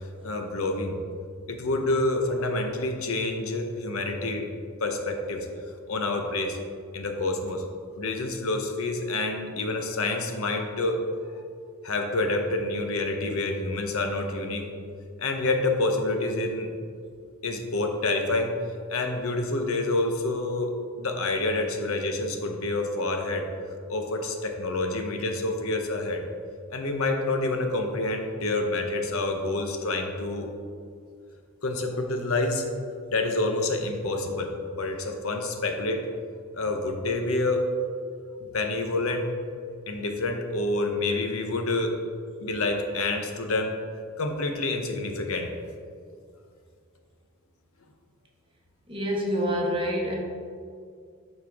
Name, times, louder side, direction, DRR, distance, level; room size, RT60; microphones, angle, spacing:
voice 1, 0.2-1.0 1.5-4.5 4.8-5.5 5.9-6.6 6.9-7.6 8.0-11.0 11.8-14.7 15.2-16.7 17.4-18.5 18.9-23.5 23.9-26.2 26.7-30.5 31.6-32.6 33.1-36.0 36.5-37.7 38.5-39.3 39.9-41.9 42.4-43.7 44.2-45.5, left 2 dB, 75° left, 4 dB, 0.8 m, -28 dB
voice 2, 48.9-50.1, equal, 25° right, -1 dB, 1.1 m, -27 dB
12.5 x 4.4 x 3.5 m, 2.2 s
head